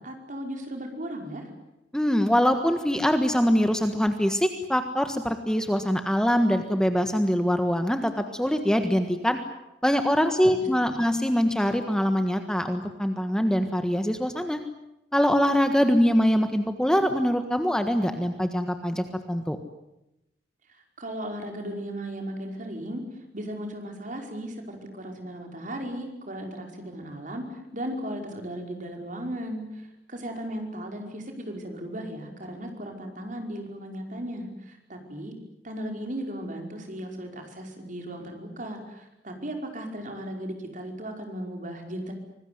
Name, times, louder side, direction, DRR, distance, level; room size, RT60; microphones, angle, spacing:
voice 1, 0.0-1.5 10.5-10.6 10.9-11.0 21.0-23.0 23.3-35.3 35.6-42.1, right 1 dB, 45° right, 4 dB, 5.3 m, -36 dB
voice 2, 1.9-9.4 9.8-14.6 15.1-19.6, equal, 5° left, 7 dB, 1.5 m, -23 dB
25.5 x 20.0 x 9.6 m, 0.90 s
head